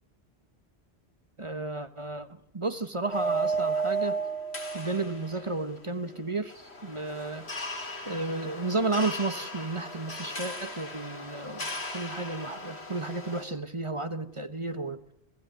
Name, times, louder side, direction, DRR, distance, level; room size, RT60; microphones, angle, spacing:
voice 1, 1.4-4.2 4.7-7.6 8.1-15.0, right 3 dB, 30° right, 10 dB, 1.3 m, -33 dB
sound 1, 3.1-6.2 6.5-13.4, right 3 dB, 80° left, 3.7 m, -34 dB
27.0 x 16.0 x 9.3 m, 0.84 s
omnidirectional pair, 1.1 m